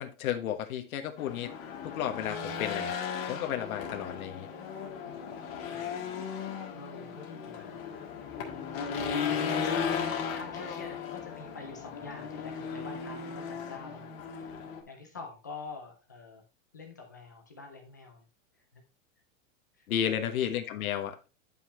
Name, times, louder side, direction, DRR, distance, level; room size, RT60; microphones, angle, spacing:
voice 1, 0.0-1.5 1.8-2.9 3.3-4.5 19.9-21.2, left 10 dB, 85° left, 1.3 m, -33 dB
Race car auto racing / Engine, 1.2-14.8, left 6 dB, 45° left, 1.8 m, -36 dB
voice 2, 5.0-5.9 6.7-7.8 8.3-8.8 9.2-14.5 14.9-16.4 16.7-18.2 18.5-18.8 19.7-20.4, left 4 dB, 15° left, 0.3 m, -46 dB
9.7 x 5.6 x 3.1 m
supercardioid pair, 180°, 41 cm